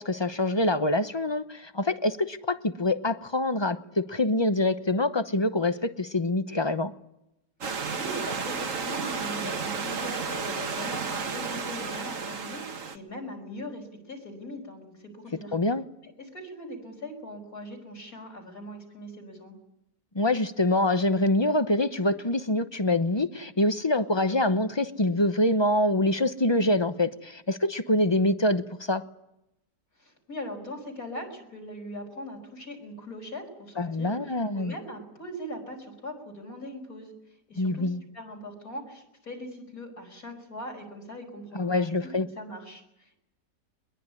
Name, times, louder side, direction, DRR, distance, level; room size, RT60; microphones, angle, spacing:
voice 1, 0.0-6.9 15.5-15.8 20.1-29.0 33.8-34.7 37.6-38.0 41.5-42.3, left 1 dB, 25° left, 11 dB, 0.7 m, -25 dB
Stream / Liquid, 7.6-13.0, right 5 dB, 50° right, 1.7 m, -32 dB
voice 2, 7.9-15.5 16.0-19.5 30.0-37.9 38.1-42.1 42.4-43.2, equal, 55° left, 1 dB, 5.9 m, -41 dB
21.5 x 21.5 x 9.8 m, 0.85 s
omnidirectional pair, 1.8 m